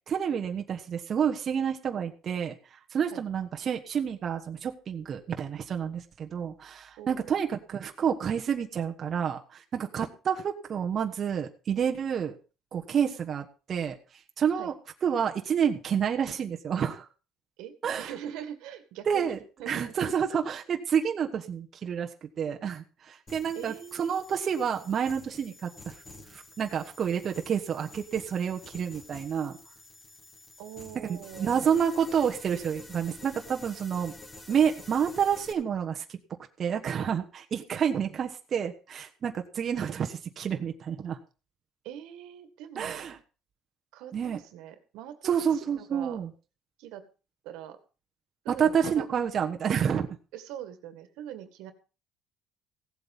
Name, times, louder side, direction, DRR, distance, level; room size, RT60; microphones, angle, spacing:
voice 1, 0.1-12.4 12.7-13.9 14.4-14.7 15.0-17.1 17.8-18.1 19.1-19.4 19.7-26.0 26.3-29.6 31.1-34.1 34.5-36.2 36.6-41.2 42.8-43.2 44.1-44.4 45.2-46.3 48.5-50.1, right 7 dB, 40° right, 3 dB, 1.3 m, -29 dB
voice 2, 7.0-7.4 14.6-14.7 17.6-19.9 23.5-24.2 30.6-31.8 41.8-43.1 43.9-46.2 46.8-47.0 47.4-47.8 48.4-49.1 50.3-51.7, right 10 dB, 85° right, 10 dB, 2.0 m, -43 dB
sound 1, 23.3-35.5, left 2 dB, 20° left, 3.1 m, -49 dB
16.0 x 8.0 x 5.4 m, 0.35 s
cardioid pair, 140°, 0 cm